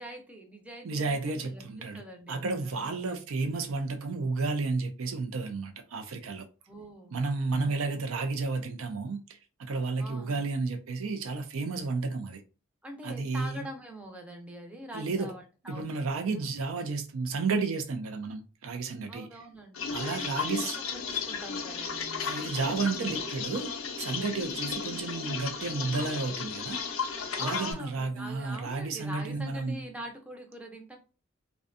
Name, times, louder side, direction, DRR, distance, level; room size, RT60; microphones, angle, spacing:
voice 1, 0.0-3.0 6.7-7.2 7.6-8.0 10.0-10.4 12.8-16.5 19.1-22.7 24.5-24.7 27.4-31.0, equal, 5° right, 0.4 m, -44 dB
voice 2, 0.8-2.0 2.3-6.4 7.1-12.4 13.0-13.7 14.9-15.3 15.7-19.3 19.9-20.8 22.2-23.7 24.0-26.8 27.4-29.8, right 3 dB, 85° right, 0.4 m, -32 dB
sound 1, 19.7-27.7, left 6 dB, 75° left, 0.5 m, -34 dB
2.5 x 2.2 x 2.4 m
head